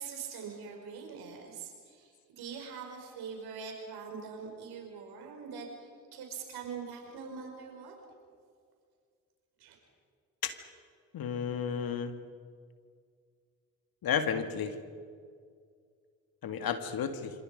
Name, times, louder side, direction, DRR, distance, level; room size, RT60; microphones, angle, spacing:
voice 1, 0.0-7.9 9.6-9.8, right 6 dB, 75° right, 2 dB, 5.4 m, -43 dB
voice 2, 11.1-12.1 14.0-14.7 16.4-17.3, left 7 dB, 65° left, 8 dB, 2.1 m, -32 dB
26.5 x 26.5 x 5.3 m, 2.1 s
hypercardioid pair, 40°, 38 cm